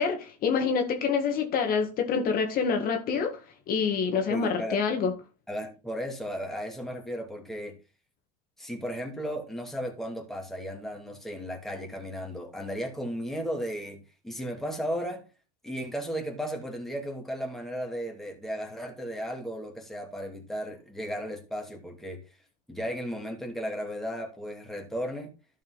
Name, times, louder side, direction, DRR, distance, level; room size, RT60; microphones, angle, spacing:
voice 1, 0.0-3.4 3.7-5.1, left 6 dB, 50° left, 1.8 m, -26 dB
voice 2, 4.3-4.8 5.5-7.8 8.6-15.2 15.6-22.2 22.7-25.3, equal, ahead, 2.5 m, -35 dB
12.0 x 5.6 x 4.0 m
supercardioid pair, 100°, 19 cm